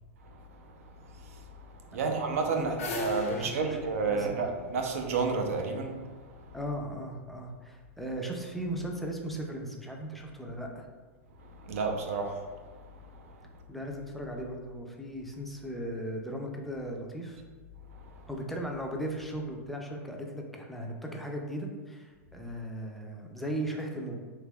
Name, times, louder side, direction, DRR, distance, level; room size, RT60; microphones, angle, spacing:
voice 1, 1.9-6.0 11.6-12.4, right 4 dB, 75° right, 3 dB, 0.5 m, -30 dB
sound 1, 2.3-5.4, left 3 dB, 80° left, 0.6 m, -39 dB
voice 2, 3.3-3.8 4.1-4.5 6.5-10.9 13.7-17.4 18.3-24.2, right 1 dB, ahead, 0 dB, 0.4 m, -37 dB
3.3 x 2.9 x 2.3 m, 1.4 s
hypercardioid pair, 135°, 8 cm